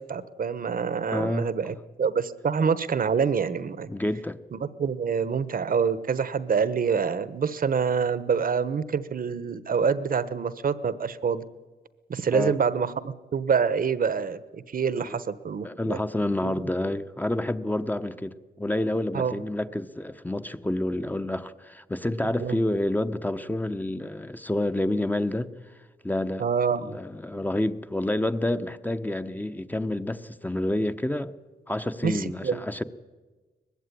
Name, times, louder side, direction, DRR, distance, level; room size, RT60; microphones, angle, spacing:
voice 1, 0.0-3.9 4.5-11.4 12.1-16.0 16.4-16.6 19.1-19.4 22.4-22.6 26.4-27.0 32.0-32.6, right 6 dB, 55° right, 1.1 m, -26 dB
voice 2, 1.1-1.5 3.9-4.4 12.3-12.6 15.0-15.2 15.6-25.5 26.0-26.4 26.8-31.3 31.7-32.8, left 1 dB, 10° left, 0.9 m, -28 dB
20.0 x 15.5 x 9.9 m
cardioid pair, 80°, 18 cm